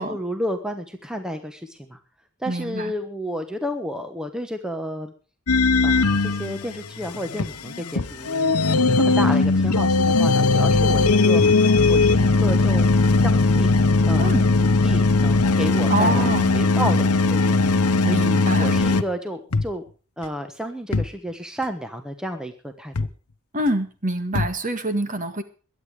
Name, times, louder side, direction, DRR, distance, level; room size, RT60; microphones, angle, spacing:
voice 1, 0.0-2.0 2.4-5.1 5.8-11.4 11.9-12.9 13.2-13.8 14.1-19.8 20.2-22.9, equal, 5° right, 6 dB, 1.1 m, -31 dB
voice 2, 2.5-2.9 14.2-14.4 15.9-16.5 16.8-17.0 18.0-18.8 23.5-25.4, right 1 dB, 35° right, 8 dB, 1.8 m, -26 dB
sound 1, 5.5-19.0 19.5-19.6 20.2-20.3 20.9-21.0 21.6-21.7 22.9-23.1 23.7-23.8 24.3-24.5, left 3 dB, 85° left, 1.0 m, -19 dB
22.0 x 9.1 x 4.9 m, 0.37 s
head